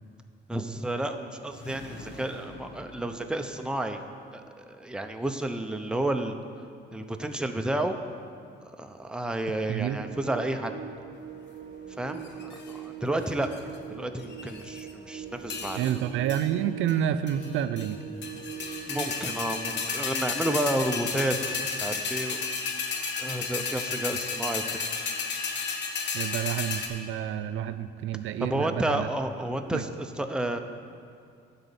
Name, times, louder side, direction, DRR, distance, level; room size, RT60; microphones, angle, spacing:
voice 1, 0.5-4.0 4.3-6.4 6.9-7.9 8.6-10.7 12.0-13.6 13.9-16.0 18.9-22.4 23.2-24.8 28.4-30.6, right 1 dB, 5° right, 5 dB, 0.6 m, -31 dB
sound 1, 1.4-4.0, left 1 dB, 85° left, 2.0 m, -46 dB
sound 2, 9.9-19.8, right 7 dB, 45° right, 0.9 m, -42 dB
sound 3, 12.2-12.7 13.3-13.8 14.2-14.9 15.5-16.0 16.3-16.5 16.9-17.0 17.3-17.9 18.2-26.9, left 5 dB, 65° left, 1.1 m, -32 dB
voice 2, 15.8-18.0 26.1-29.1 29.7-29.8, right 10 dB, 85° right, 12 dB, 0.4 m, -29 dB
11.5 x 4.1 x 7.0 m, 2.3 s
cardioid pair, 90°, 20 cm